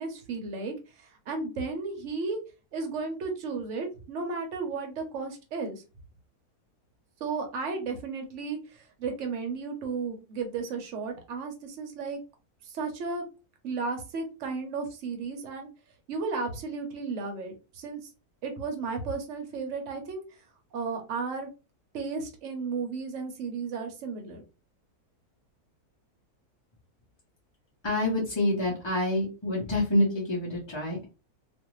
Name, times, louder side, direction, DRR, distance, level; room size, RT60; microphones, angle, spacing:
voice 1, 0.0-2.4 2.7-5.8 7.2-12.2 12.6-13.2 13.6-15.7 16.1-18.1 18.4-20.2 20.7-21.5 21.9-24.4, right 4 dB, 60° right, 3 dB, 1.0 m, -34 dB
voice 2, 27.8-31.1, left 1 dB, 30° left, -4 dB, 0.5 m, -27 dB
2.5 x 2.5 x 3.0 m, 0.31 s
omnidirectional pair, 1.6 m